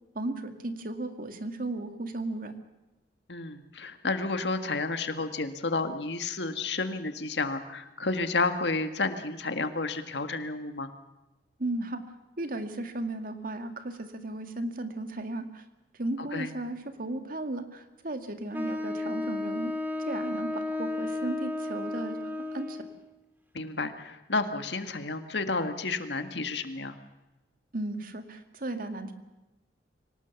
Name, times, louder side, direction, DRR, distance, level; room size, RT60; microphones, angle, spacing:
voice 1, 0.1-2.6 11.6-12.0 12.4-15.6 15.9-19.7 20.0-22.8 27.7-29.1, right 2 dB, 55° right, 7 dB, 2.1 m, -35 dB
voice 2, 3.3-10.9 16.2-16.5 23.5-27.0, left 3 dB, 75° left, 8 dB, 1.8 m, -31 dB
Wind instrument woodwind instrument, 18.5-23.0, left 2 dB, 10° right, 2.5 m, -33 dB
25.0 x 18.5 x 7.1 m, 1.0 s
head